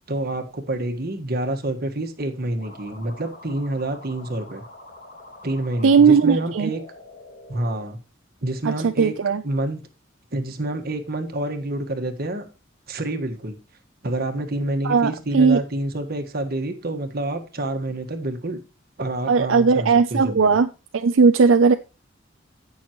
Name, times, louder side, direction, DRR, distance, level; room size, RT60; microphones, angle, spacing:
voice 1, 0.1-4.6 5.4-6.8 7.5-8.0 8.4-9.1 9.4-9.8 10.3-12.5 12.9-13.6 14.0-18.6 19.0-20.6, right 1 dB, 55° right, 6 dB, 1.5 m, -28 dB
sound 1, 2.6-7.8, left 2 dB, 45° left, 3.8 m, -45 dB
voice 2, 5.8-6.7 8.6-9.4 14.8-15.6 19.3-20.7 20.9-21.7, right 5 dB, 80° right, 8 dB, 0.5 m, -17 dB
16.5 x 6.3 x 3.0 m, 0.30 s
head